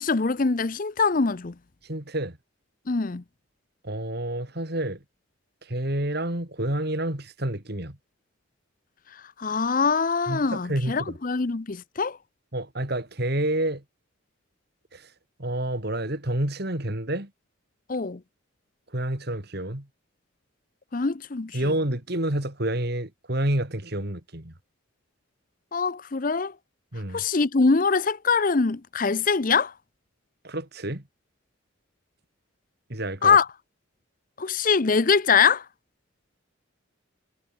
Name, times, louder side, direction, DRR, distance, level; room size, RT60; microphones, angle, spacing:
voice 1, 0.0-1.5 2.9-3.2 9.4-12.2 17.9-18.2 20.9-21.6 25.7-26.5 27.1-29.7 33.2-33.5 34.4-35.7, left 5 dB, 40° left, 0.6 m, -23 dB
voice 2, 1.8-2.4 3.8-5.0 5.6-8.0 10.3-11.2 12.5-13.8 14.9-15.1 15.4-17.3 18.9-19.9 21.5-24.5 26.9-27.2 30.4-31.0 32.9-33.4, right 1 dB, 50° right, 3.0 m, -29 dB
head